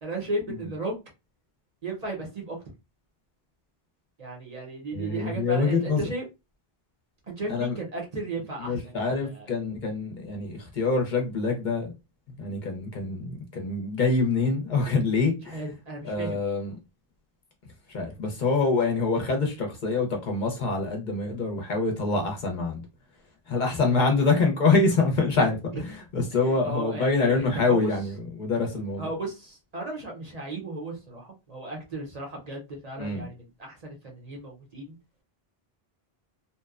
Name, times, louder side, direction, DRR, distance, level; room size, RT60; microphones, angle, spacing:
voice 1, 0.0-0.9 1.8-2.6 4.2-6.2 7.3-9.5 15.5-16.4 26.4-27.9 29.0-35.0, right 2 dB, 45° right, 0.7 m, -35 dB
voice 2, 4.9-6.1 7.5-7.8 8.6-11.9 12.4-15.6 16.0-16.8 17.9-22.9 23.5-29.1 33.0-33.2, left 3 dB, 55° left, 0.7 m, -25 dB
2.7 x 2.1 x 2.3 m
omnidirectional pair, 1.0 m